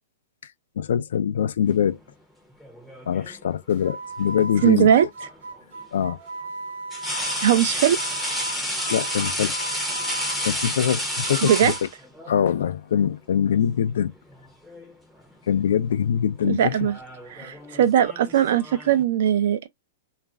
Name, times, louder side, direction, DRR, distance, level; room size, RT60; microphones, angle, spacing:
voice 1, 0.8-2.0 3.1-4.9 5.9-6.2 8.9-9.6 10.4-11.7 12.3-14.1 15.5-16.9, left 8 dB, 80° left, 0.4 m, -23 dB
sound 1, 2.6-3.5 5.2-5.4 6.9-12.4 13.6-13.8 14.2-14.9 15.2-15.6 16.4-19.0, equal, ahead, 0.6 m, -30 dB
sound 2, 3.7-11.9, right 2 dB, 80° right, 0.9 m, -36 dB
voice 2, 4.6-5.1 7.4-8.0 11.4-11.7 16.4-17.0 17.3-19.7, right 10 dB, 65° right, 0.5 m, -19 dB
2.4 x 2.0 x 3.4 m
supercardioid pair, 160°, 0 cm